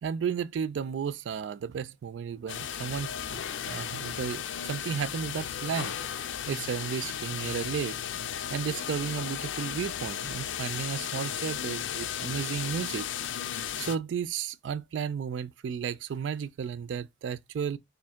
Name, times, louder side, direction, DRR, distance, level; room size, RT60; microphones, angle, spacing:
voice 1, 0.0-3.4 3.7-6.0 6.5-8.0 8.5-13.1 13.8-17.8, right 7 dB, 75° right, 0.3 m, -33 dB
sound 1, 2.5-14.0, left 9 dB, 80° left, 0.4 m, -35 dB
4.3 x 2.6 x 3.5 m
head